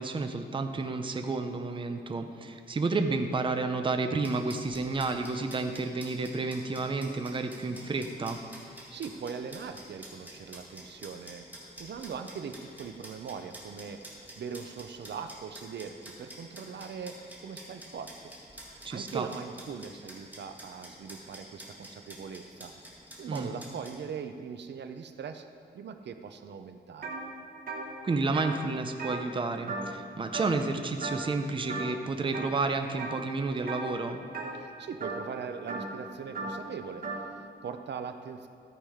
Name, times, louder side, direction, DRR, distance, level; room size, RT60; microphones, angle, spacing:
voice 1, 0.0-8.4 18.8-19.3 23.3-23.5 28.0-34.2, right 3 dB, 30° right, 6 dB, 0.6 m, -31 dB
sound 1, 4.2-24.0, right 1 dB, 10° right, 1.9 m, -49 dB
voice 2, 8.9-18.1 18.6-22.7 23.2-25.5 25.7-27.2 34.5-38.5, right 6 dB, 80° right, 8 dB, 0.6 m, -41 dB
sound 2, 27.0-27.2 27.5-30.1 30.3-30.7 31.0-31.4 31.7-32.5 33.0-33.3 33.6-37.3, right 3 dB, 55° right, 1.5 m, -37 dB
13.5 x 7.4 x 5.0 m, 2.2 s
wide cardioid pair, 170°, 18 cm